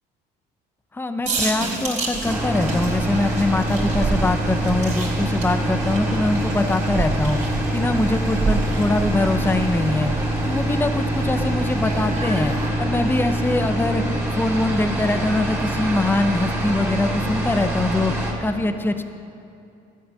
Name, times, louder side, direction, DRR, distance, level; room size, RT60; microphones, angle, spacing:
voice 1, 0.9-10.1 10.4-14.0 14.3-19.0, left 2 dB, 10° left, 8 dB, 0.7 m, -23 dB
sound 1, 1.2-12.7, right 3 dB, 35° right, 3.5 m, -30 dB
sound 2, 2.2-18.3, right 1 dB, 15° right, 2.8 m, -25 dB
14.0 x 7.9 x 6.4 m, 2.6 s
supercardioid pair, 75°, 20 cm